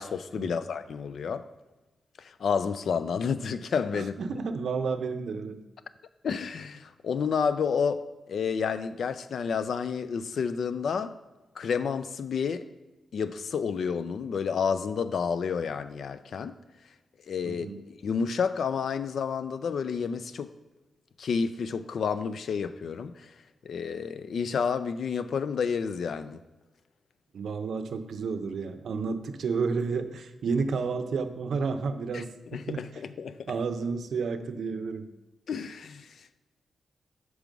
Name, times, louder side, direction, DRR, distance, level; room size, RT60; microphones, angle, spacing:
voice 1, 0.0-1.5 2.2-4.4 6.2-11.1 11.6-12.7 13.1-16.6 17.3-20.5 21.2-23.3 23.6-26.4 32.1-32.2 32.5-33.5 35.5-36.4, left 6 dB, 65° left, 0.3 m, -30 dB
voice 2, 3.9-5.6 17.4-17.8 27.3-32.3 32.7-32.8 33.5-35.1, right 5 dB, 70° right, 0.5 m, -31 dB
6.1 x 4.7 x 5.2 m
wide cardioid pair, 160°, 0 cm